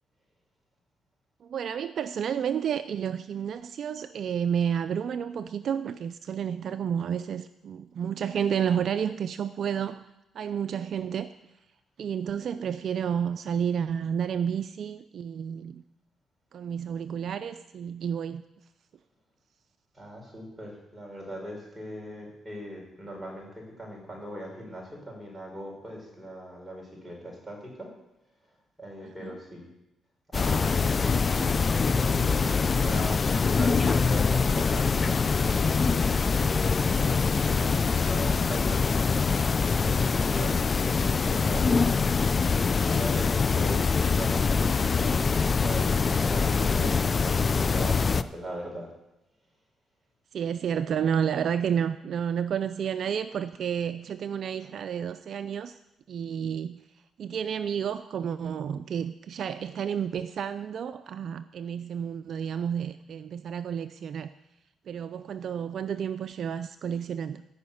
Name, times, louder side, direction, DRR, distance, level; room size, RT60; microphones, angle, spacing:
voice 1, 1.4-15.8 16.5-18.7 29.0-29.4 46.8-46.9 48.0-48.1 50.3-55.8 56.1-64.3 64.8-67.4, right 8 dB, 60° right, 11 dB, 0.4 m, -31 dB
voice 2, 19.9-27.9 28.8-29.7 30.3-37.1 37.4-41.7 42.4-45.2 45.6-48.9, equal, 10° right, -1 dB, 5.3 m, -39 dB
sound 1, 30.3-48.2, left 5 dB, 35° left, 0.5 m, -24 dB
15.0 x 5.7 x 8.5 m, 0.91 s
cardioid pair, 90°, 0 cm